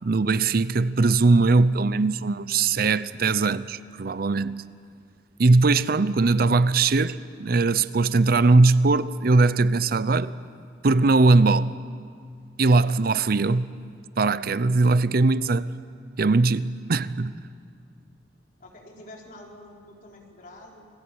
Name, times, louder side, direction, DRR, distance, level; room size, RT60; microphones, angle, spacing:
voice 1, 0.0-4.6 5.4-10.3 10.8-11.8 12.6-13.7 14.2-15.8 16.2-17.3, right 3 dB, 55° right, 0.6 m, -20 dB
voice 2, 18.6-20.9, left 1 dB, 50° left, 4.3 m, -47 dB
28.5 x 20.0 x 8.6 m
head